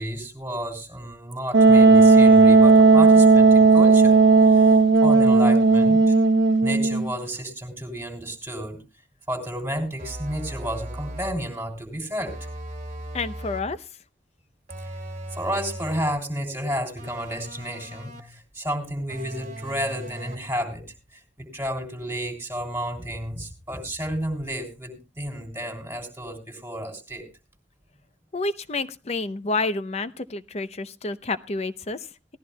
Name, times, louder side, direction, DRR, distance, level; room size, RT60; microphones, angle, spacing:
voice 1, 0.0-4.2 4.4-4.8 5.0-6.1 6.6-8.8 9.3-12.3 14.8-15.0 15.3-20.8 21.1-27.3, equal, 15° right, 2 dB, 3.1 m, -31 dB
Wind instrument woodwind instrument, 1.5-7.1, right 3 dB, 75° right, 0.8 m, -14 dB
sound 1, 10.0-11.5 12.3-13.8 14.7-16.2 17.0-18.4 19.1-20.5, right 1 dB, 40° right, 1.6 m, -38 dB
voice 2, 13.1-13.9 28.3-32.1, left 3 dB, 35° left, 12 dB, 0.7 m, -29 dB
18.5 x 14.0 x 2.2 m, 0.29 s
head